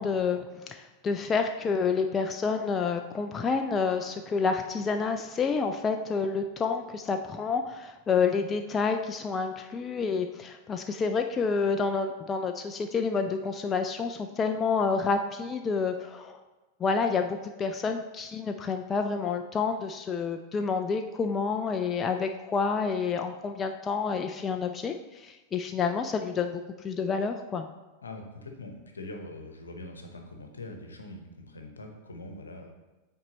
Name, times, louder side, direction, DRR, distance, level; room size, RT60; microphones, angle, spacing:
voice 1, 0.0-16.4 16.8-27.7, left 5 dB, 20° left, 5 dB, 0.3 m, -29 dB
voice 2, 28.0-32.7, left 2 dB, 75° left, 4 dB, 0.9 m, -43 dB
8.5 x 4.4 x 2.9 m, 1.1 s
figure-of-eight pair, 90°, 0 cm